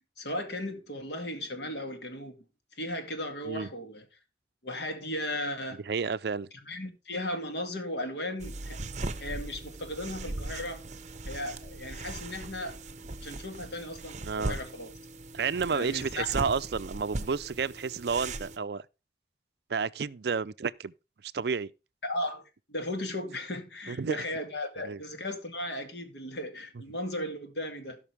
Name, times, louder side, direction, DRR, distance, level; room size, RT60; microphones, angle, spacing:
voice 1, 0.0-2.4 2.8-4.1 4.6-5.8 6.5-8.8 9.2-10.8 11.3-12.8 13.2-14.9 15.7-16.3 22.0-22.4 22.7-28.0, left 1 dB, 65° left, 2.4 m, -36 dB
voice 2, 5.9-6.5 14.2-14.6 15.3-18.8 19.7-20.9 21.3-21.7 23.9-24.2 24.8-25.0, right 5 dB, 60° right, 0.5 m, -31 dB
sound 1, 8.4-18.6, right 2 dB, 40° right, 1.0 m, -39 dB
17.0 x 5.9 x 3.3 m
head